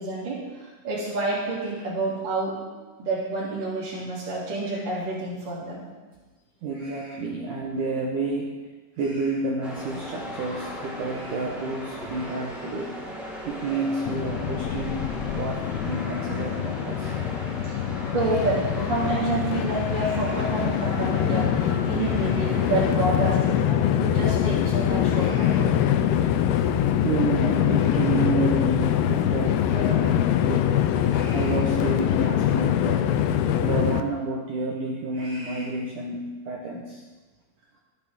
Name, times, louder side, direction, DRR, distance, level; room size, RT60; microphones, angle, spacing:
voice 1, 0.0-2.6 3.0-5.8 12.0-12.1 13.4-13.5 17.6-17.7 18.1-25.8, right 2 dB, 30° right, -7 dB, 2.8 m, -28 dB
voice 2, 6.6-8.6 9.0-12.9 13.5-15.1 15.4-17.6 20.0-20.4 22.0-22.4 25.1-25.6 27.0-33.0 33.6-37.0, right 3 dB, 80° right, -2 dB, 1.8 m, -30 dB
sound 1, 9.6-22.9, equal, ahead, 3.8 m, -37 dB
Train, 14.1-34.0, left 10 dB, 90° left, 2.2 m, -24 dB
25.5 x 8.8 x 3.7 m, 1.3 s
omnidirectional pair, 5.5 m